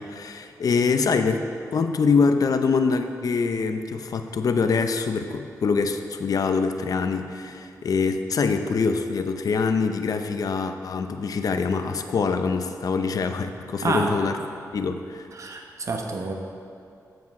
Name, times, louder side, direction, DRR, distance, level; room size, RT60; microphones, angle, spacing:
voice 1, 0.0-1.4 1.7-14.4 14.7-15.3, left 5 dB, 65° left, 7 dB, 0.6 m, -24 dB
voice 2, 13.8-14.2 15.3-16.3, right 3 dB, 50° right, 2 dB, 1.0 m, -28 dB
7.8 x 7.2 x 4.7 m, 2.4 s
cardioid pair, 90°, 7 cm